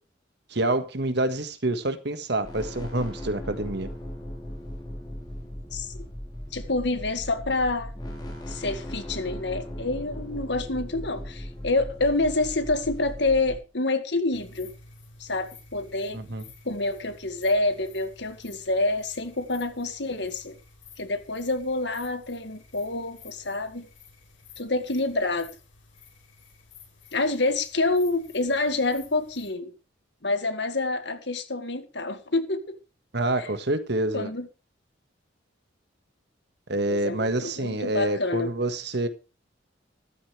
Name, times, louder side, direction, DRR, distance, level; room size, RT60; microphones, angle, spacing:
voice 1, 0.5-3.9 16.1-16.4 33.1-34.3 36.7-39.1, right 2 dB, 60° right, 1.6 m, -27 dB
sound 1, 2.4-13.6, equal, 20° left, 4.3 m, -38 dB
voice 2, 5.7-6.0 6.5-7.9 8.5-14.7 15.2-16.2 16.7-20.6 21.0-23.9 24.6-25.5 27.1-29.7 30.2-32.8 33.4-33.5 34.1-34.5 36.9-38.5, left 2 dB, 60° left, 1.9 m, -27 dB
Night sounds of Holland, 14.3-29.5, left 4 dB, 80° left, 7.2 m, -52 dB
14.5 x 13.0 x 3.3 m
head